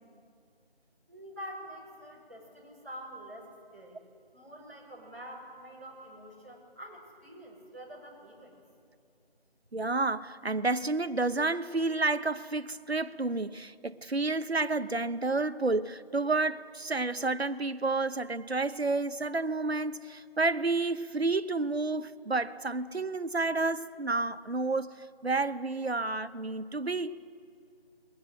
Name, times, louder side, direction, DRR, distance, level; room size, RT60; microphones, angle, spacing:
voice 1, 1.1-4.0 4.3-8.6, equal, 15° right, 5.1 m, -46 dB
voice 2, 9.7-27.2, right 3 dB, 80° right, 1.1 m, -30 dB
28.5 x 21.5 x 8.0 m
figure-of-eight pair, 180°, 31 cm